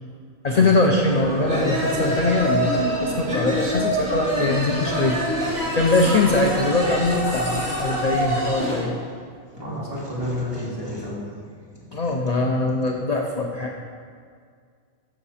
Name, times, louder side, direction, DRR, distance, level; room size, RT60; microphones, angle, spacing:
voice 1, 0.4-8.9 11.9-13.7, left 2 dB, 40° left, 1 dB, 0.7 m, -22 dB
sound 1, 1.0-8.8, right 1 dB, 35° right, 2.4 m, -26 dB
sound 2, 1.1-8.6, left 2 dB, 85° left, 1.5 m, -39 dB
sound 3, 1.4-2.9 3.5-9.1 9.6-12.9, equal, 20° left, 1.8 m, -42 dB
voice 2, 9.6-11.2, left 1 dB, 15° right, -8 dB, 2.8 m, -30 dB
13.0 x 7.3 x 4.2 m, 2.1 s
omnidirectional pair, 1.3 m